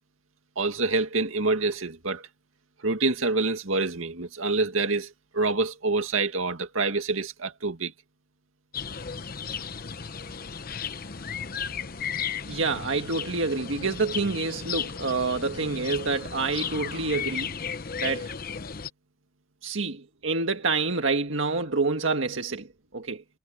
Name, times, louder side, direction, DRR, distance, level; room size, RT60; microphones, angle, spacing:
voice 1, 0.6-2.2 2.8-7.9, right 3 dB, 85° right, 2.2 m, -26 dB
sound 1, 8.7-18.9, left 6 dB, 45° left, 0.9 m, -35 dB
voice 2, 12.5-17.5 18.0-18.3 19.6-22.7 22.9-23.2, right 3 dB, 70° right, 1.8 m, -27 dB
head